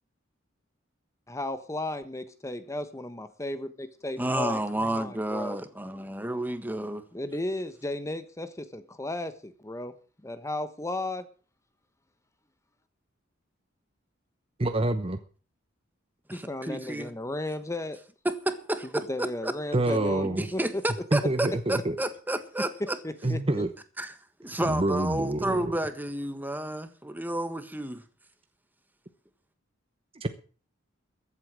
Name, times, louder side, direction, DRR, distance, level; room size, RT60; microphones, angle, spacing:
voice 1, 1.3-5.6 7.1-10.0 10.2-11.3 16.3-18.0 18.8-20.8 23.0-23.4, left 1 dB, 15° left, 11 dB, 1.1 m, -34 dB
voice 2, 4.2-7.0 16.3-17.1 18.2-19.5 20.4-23.0 24.0-24.1 24.4-28.0, right 1 dB, 10° right, 10 dB, 1.5 m, -31 dB
voice 3, 14.6-15.2 19.7-20.5 21.1-22.0 23.2-23.7 24.6-25.8 30.2-30.3, right 1 dB, 30° right, 9 dB, 0.9 m, -27 dB
14.5 x 8.4 x 7.5 m, 0.39 s
head